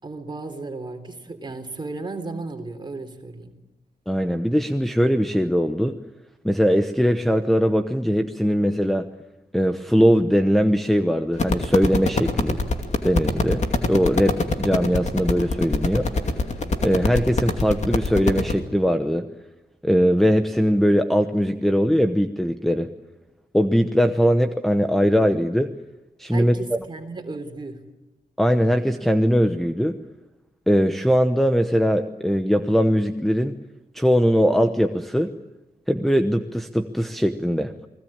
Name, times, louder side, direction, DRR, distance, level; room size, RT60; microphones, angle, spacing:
voice 1, 0.0-3.6 26.3-27.8, right 3 dB, 25° right, 5 dB, 3.6 m, -34 dB
voice 2, 4.1-6.0 6.4-9.0 9.5-12.6 13.0-13.6 13.9-16.1 16.8-19.2 19.8-22.9 23.5-25.7 26.2-26.5 28.4-30.0 30.7-33.6 33.9-35.3 35.9-37.9, equal, ahead, 7 dB, 0.9 m, -20 dB
sound 1, 11.3-18.5, left 3 dB, 40° left, 2.6 m, -24 dB
29.5 x 20.5 x 8.8 m, 0.98 s
wide cardioid pair, 175°, 17 cm